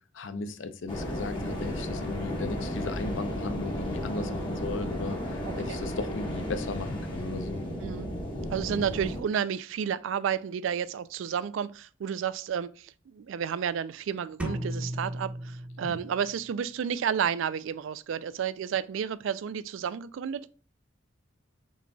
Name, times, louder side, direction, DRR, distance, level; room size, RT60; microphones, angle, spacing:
voice 1, 0.1-7.6 15.8-16.0, left 3 dB, 70° left, 0.6 m, -36 dB
sound 1, 0.9-9.2, equal, 25° left, 1.2 m, -34 dB
voice 2, 5.4-5.8 7.8-8.1 8.5-20.5, right 8 dB, 75° right, 0.3 m, -31 dB
sound 2, 14.4-16.3, right 1 dB, 5° right, 1.0 m, -35 dB
6.1 x 3.9 x 2.2 m
head